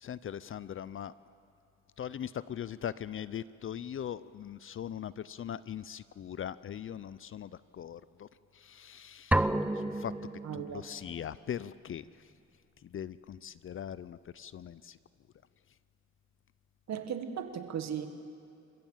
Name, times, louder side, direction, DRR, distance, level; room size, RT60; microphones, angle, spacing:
voice 1, 0.0-1.1 2.0-9.5 9.7-10.1 10.5-12.0 12.8-15.0, left 9 dB, 45° left, 17 dB, 0.5 m, -40 dB
sound 1, 9.3-11.1, right 1 dB, 5° right, 0.6 m, -31 dB
voice 2, 10.4-10.8 16.9-18.1, right 8 dB, 60° right, 8 dB, 1.7 m, -36 dB
28.0 x 15.5 x 7.3 m, 2.6 s
cardioid pair, 90°, 30 cm